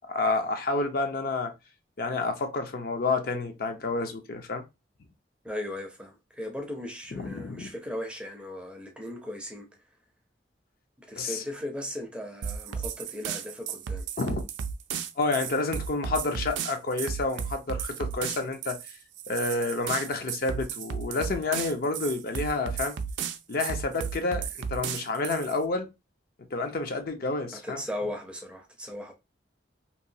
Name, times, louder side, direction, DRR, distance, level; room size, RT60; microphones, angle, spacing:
voice 1, 0.1-1.5 2.0-4.6 7.1-7.7 11.2-11.4 14.2-14.4 15.2-18.8 19.3-23.0 23.5-25.9 26.5-27.8, left 3 dB, 55° left, 0.5 m, -29 dB
voice 2, 5.4-9.7 11.0-14.1 27.5-29.1, left 1 dB, 5° right, 0.5 m, -37 dB
sound 1, 12.4-25.6, right 7 dB, 80° right, 0.4 m, -34 dB
2.9 x 2.2 x 2.6 m
head